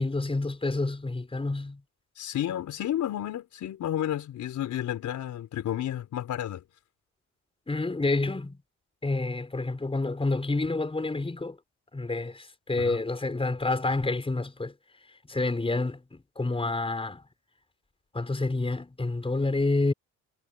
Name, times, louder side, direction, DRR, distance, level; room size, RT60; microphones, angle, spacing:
voice 1, 0.0-1.8 7.7-8.6 9.0-11.6 11.9-14.7 15.3-17.2 18.1-19.9, left 2 dB, 20° left, 5.4 m, -28 dB
voice 2, 2.2-6.6 12.8-13.0, left 11 dB, 75° left, 4.7 m, -31 dB
cardioid pair, 90°, 30 cm